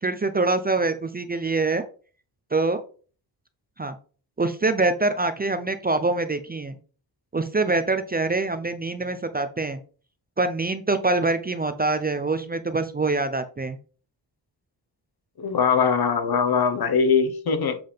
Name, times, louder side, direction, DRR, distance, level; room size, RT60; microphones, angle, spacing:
voice 1, 0.0-1.8 2.5-2.8 3.8-3.9 4.4-6.8 7.3-9.8 10.4-13.8, right 3 dB, 20° right, 0.6 m, -24 dB
voice 2, 15.4-17.8, left 6 dB, 55° left, 1.2 m, -21 dB
7.6 x 3.6 x 5.1 m
wide cardioid pair, 115°, 43 cm